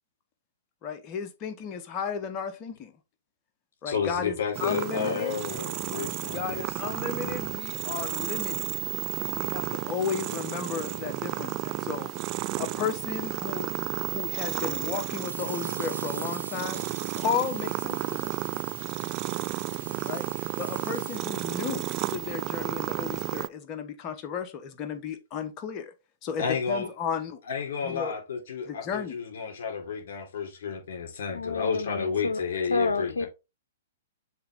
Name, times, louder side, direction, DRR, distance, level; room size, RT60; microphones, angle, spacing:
voice 1, 0.8-2.9 3.8-5.4 6.3-8.7 9.2-12.1 12.6-13.7 14.1-16.8 17.2-18.4 20.0-20.2 20.6-25.9 26.2-27.4 27.8-28.1 28.7-29.1, left 7 dB, 35° left, 1.1 m, -34 dB
voice 2, 3.8-7.5 26.4-26.9 27.5-33.3, left 6 dB, 60° left, 3.2 m, -32 dB
sound 1, 4.5-23.5, right 19 dB, 35° right, 0.3 m, -32 dB
sound 2, 14.5-21.2, right 4 dB, 85° right, 0.9 m, -43 dB
voice 3, 31.3-32.4 32.7-33.3, left 4 dB, 80° left, 0.6 m, -29 dB
7.2 x 3.5 x 3.7 m
hypercardioid pair, 115°, 0 cm